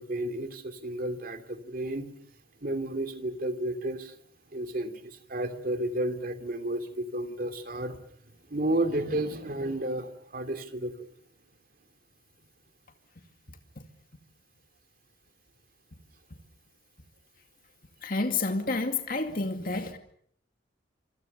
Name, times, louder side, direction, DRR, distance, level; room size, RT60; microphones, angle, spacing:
voice 1, 0.0-2.1 2.6-4.2 4.5-8.0 8.5-11.1, right 1 dB, 50° right, 2.9 m, -32 dB
voice 2, 18.0-20.0, left 3 dB, 50° left, 2.3 m, -29 dB
27.0 x 25.5 x 6.8 m
head